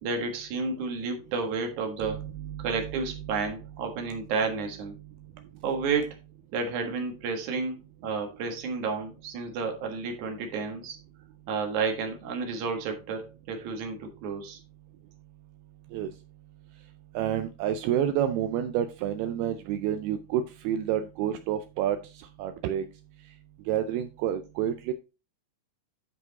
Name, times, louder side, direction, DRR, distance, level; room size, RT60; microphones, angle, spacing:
voice 1, 0.0-2.3 2.6-4.9 5.6-6.2 6.5-11.0 11.5-14.6, right 4 dB, 55° right, 4 dB, 2.4 m, -31 dB
voice 2, 17.2-22.0 22.4-22.9 23.7-24.9, right 10 dB, 85° right, 9 dB, 2.3 m, -28 dB
10.5 x 4.7 x 4.0 m, 0.29 s
omnidirectional pair, 4.9 m